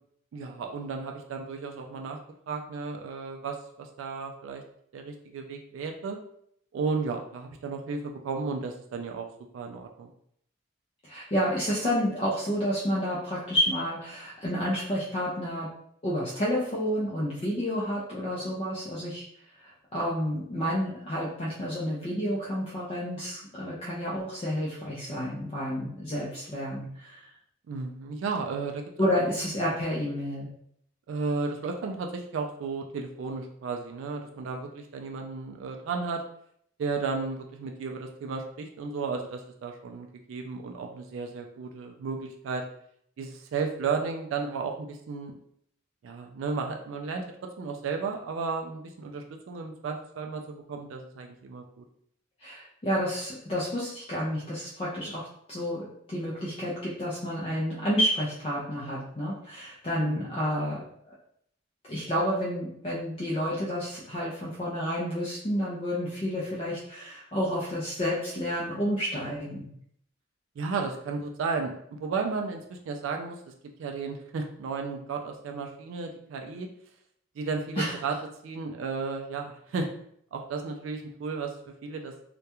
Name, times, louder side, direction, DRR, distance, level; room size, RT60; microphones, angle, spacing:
voice 1, 0.3-2.2 2.5-4.6 4.9-6.2 6.7-9.3 9.5-10.1 27.7-29.1 31.1-36.2 36.8-42.6 43.2-45.3 46.0-47.2 47.6-51.8 60.0-60.3 70.6-73.4 73.8-76.7 77.4-78.2 78.4-79.9 80.3-81.5 81.8-82.1, right 4 dB, 80° right, 3 dB, 0.3 m, -33 dB
voice 2, 11.0-15.7 16.0-19.3 19.5-27.3 29.0-30.5 52.4-60.8 61.8-69.7 77.8-78.0, equal, 30° left, -7 dB, 0.4 m, -30 dB
2.3 x 2.1 x 2.9 m, 0.69 s
head